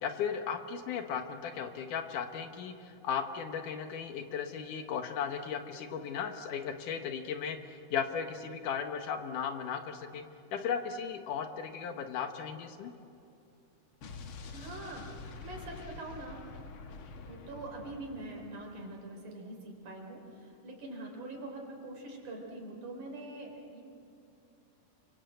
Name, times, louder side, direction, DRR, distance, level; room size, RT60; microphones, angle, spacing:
voice 1, 0.0-10.2 10.5-12.9, left 7 dB, 70° left, 6 dB, 2.7 m, -36 dB
Explosion, 14.0-18.8, left 4 dB, 50° left, 1.6 m, -47 dB
voice 2, 14.5-15.1 15.4-16.4 17.3-23.8, right 2 dB, 65° right, 1 dB, 5.5 m, -44 dB
28.5 x 24.5 x 8.0 m, 2.8 s
omnidirectional pair, 3.9 m